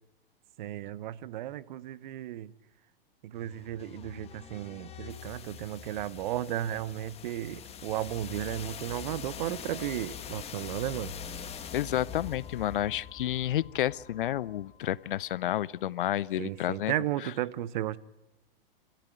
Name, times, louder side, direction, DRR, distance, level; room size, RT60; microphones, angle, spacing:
voice 1, 0.6-2.5 3.2-11.1 16.4-18.0, right 13 dB, 50° right, 0.9 m, -34 dB
sound 1, 3.3-15.2, left 8 dB, 20° left, 1.9 m, -44 dB
voice 2, 11.7-16.9, left 13 dB, 60° left, 0.7 m, -30 dB
29.5 x 13.5 x 9.2 m
figure-of-eight pair, 105°, 29 cm